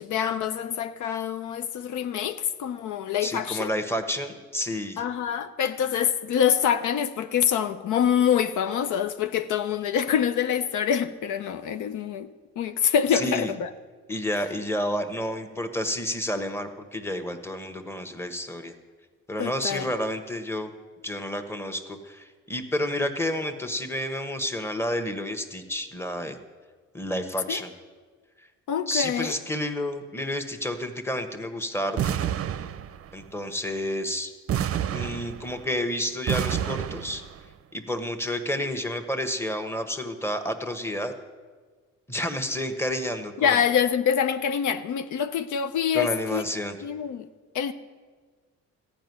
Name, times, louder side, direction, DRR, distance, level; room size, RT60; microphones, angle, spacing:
voice 1, 0.0-3.7 5.0-12.3 12.6-13.7 19.4-19.9 27.5-27.6 28.7-29.4 43.4-46.4 46.8-47.3 47.5-47.7, left 8 dB, 80° left, 0.6 m, -25 dB
voice 2, 3.2-5.0 13.1-13.5 14.1-18.7 19.3-20.7 21.0-26.4 26.9-27.7 28.9-32.2 33.1-34.3 34.9-37.2 37.7-41.1 42.1-43.6 45.9-46.8, left 1 dB, 10° left, 1.1 m, -30 dB
sound 1, 32.0-33.2 34.5-35.8 36.3-37.4, right 10 dB, 50° right, 0.5 m, -29 dB
14.0 x 5.3 x 9.3 m
cardioid pair, 90°, 30 cm